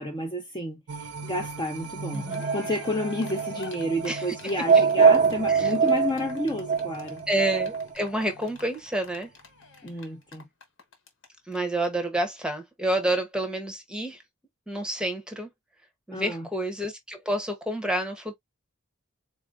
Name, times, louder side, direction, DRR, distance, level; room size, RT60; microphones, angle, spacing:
voice 1, 0.0-7.2 9.8-10.5 16.1-16.5, left 1 dB, 20° left, 0.7 m, -31 dB
sound 1, 0.9-9.3 9.7-9.8, right 3 dB, 80° right, 0.6 m, -41 dB
Cheering, 1.8-11.3 11.5-11.6 11.8-11.9, left 4 dB, 60° left, 1.2 m, -46 dB
sound 2, 2.3-7.9, right 5 dB, 30° right, 0.3 m, -23 dB
voice 2, 7.3-9.3 11.5-14.2 14.7-15.5 16.1-18.4, right 1 dB, 5° right, 0.9 m, -29 dB
4.2 x 2.7 x 2.5 m
head